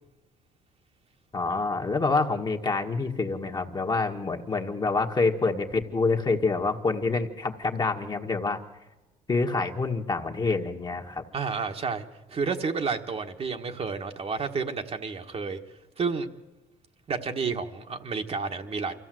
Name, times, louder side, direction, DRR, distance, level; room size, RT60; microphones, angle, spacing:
voice 1, 1.3-8.6 9.3-11.2, left 3 dB, 25° left, 4 dB, 1.6 m, -27 dB
voice 2, 11.3-15.6 16.0-16.3 17.1-18.9, right 5 dB, 35° right, 4 dB, 1.5 m, -30 dB
24.5 x 15.0 x 7.7 m, 1.1 s
cardioid pair, 110°, 17 cm